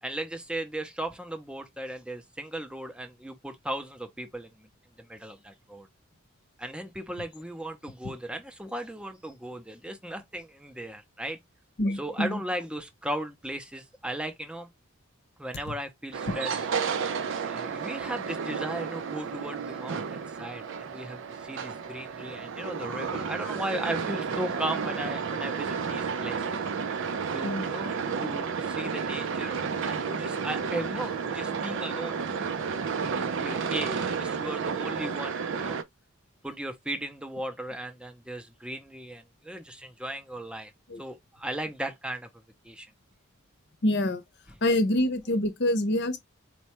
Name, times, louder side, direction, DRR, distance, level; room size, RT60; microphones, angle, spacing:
voice 1, 0.0-4.7 5.0-5.9 6.6-11.4 11.9-14.7 15.4-16.6 17.4-26.6 27.3-27.9 28.2-32.2 33.0-35.8 36.4-40.7 41.0-42.3 42.6-42.9, right 1 dB, 5° right, 0.5 m, -37 dB
voice 2, 11.8-12.4 16.3-16.4 27.4-27.6 40.9-41.0 43.8-44.2 44.6-46.2, left 1 dB, 55° left, 0.7 m, -26 dB
sound 1, 16.1-35.8, right 6 dB, 60° right, 0.4 m, -32 dB
4.3 x 2.2 x 2.9 m
head